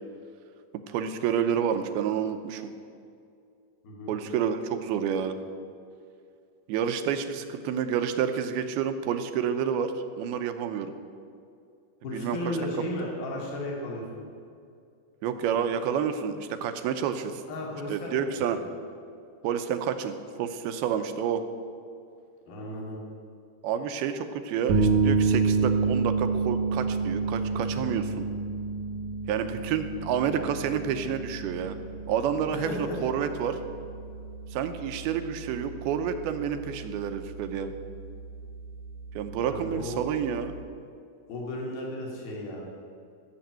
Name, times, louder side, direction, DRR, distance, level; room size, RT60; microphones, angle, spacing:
voice 1, 0.9-2.7 4.1-5.4 6.7-10.9 12.1-12.6 15.2-17.4 17.9-18.6 19.4-21.4 23.6-28.3 29.3-31.8 32.1-33.6 34.5-37.7 39.2-40.6, right 8 dB, 85° right, 8 dB, 2.7 m, -29 dB
voice 2, 3.8-4.1 12.0-14.2 17.5-18.3 18.5-18.6 22.5-23.0 32.5-33.0 39.4-40.0 41.3-42.6, left 1 dB, 75° left, -2 dB, 4.2 m, -34 dB
sound 1, 24.7-40.6, right 4 dB, 70° right, 1.6 m, -30 dB
14.5 x 7.1 x 8.9 m, 2.4 s
omnidirectional pair, 4.4 m